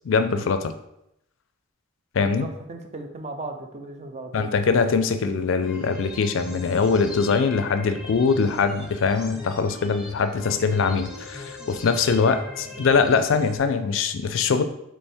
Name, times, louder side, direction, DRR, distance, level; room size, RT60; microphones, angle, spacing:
voice 1, 0.0-0.7 2.1-2.5 4.3-14.6, left 5 dB, 65° left, 9 dB, 0.4 m, -22 dB
voice 2, 2.2-4.5, right 2 dB, 35° right, 5 dB, 0.5 m, -36 dB
sound 1, 5.6-13.6, left 2 dB, 5° right, 1.0 m, -40 dB
3.4 x 3.0 x 4.4 m, 0.80 s
head